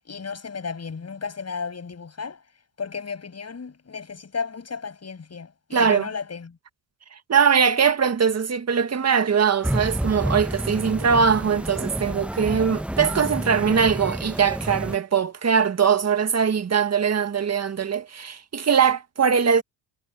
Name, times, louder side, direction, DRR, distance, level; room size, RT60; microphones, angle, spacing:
voice 1, 0.0-2.4 2.8-6.6, left 5 dB, 35° left, 8.0 m, -34 dB
voice 2, 5.7-6.0 7.1-19.6, right 6 dB, 35° right, 1.8 m, -21 dB
sound 1, 9.6-15.0, right 1 dB, 5° right, 1.2 m, -29 dB
cardioid pair, 80°, 45 cm